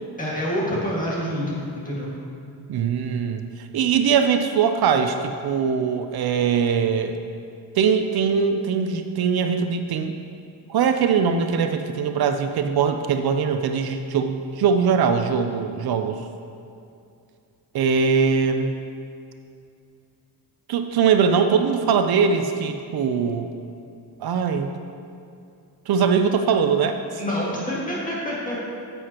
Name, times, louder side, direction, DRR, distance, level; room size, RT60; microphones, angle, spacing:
voice 1, 0.2-2.1 27.2-28.6, equal, 20° left, -6 dB, 1.9 m, -27 dB
voice 2, 2.7-7.1 7.8-10.1 10.7-16.2 17.7-18.7 20.7-23.5 24.2-24.8 25.9-27.0, right 6 dB, 70° right, 7 dB, 0.5 m, -21 dB
9.8 x 7.8 x 2.9 m, 2.5 s
wide cardioid pair, 160°, 39 cm